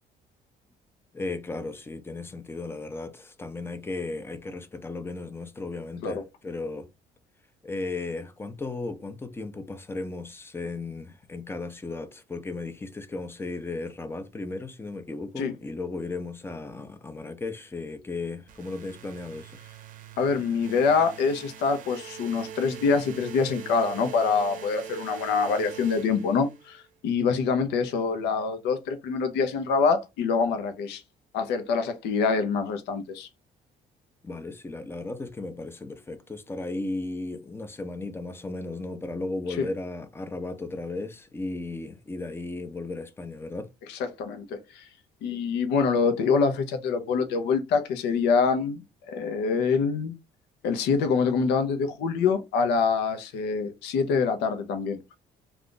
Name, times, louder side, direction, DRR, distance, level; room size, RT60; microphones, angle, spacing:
voice 1, 1.1-6.9 7.6-19.6 34.2-43.7, left 3 dB, 15° left, 0.5 m, -35 dB
sound 1, 18.5-26.8, right 9 dB, 50° right, 0.6 m, -43 dB
voice 2, 20.2-31.0 31.3-33.3 39.6-39.7 44.0-44.9 45.2-48.8 49.1-50.1 50.6-55.2, left 5 dB, 85° left, 0.7 m, -25 dB
2.5 x 2.4 x 3.7 m
cardioid pair, 110°, 17 cm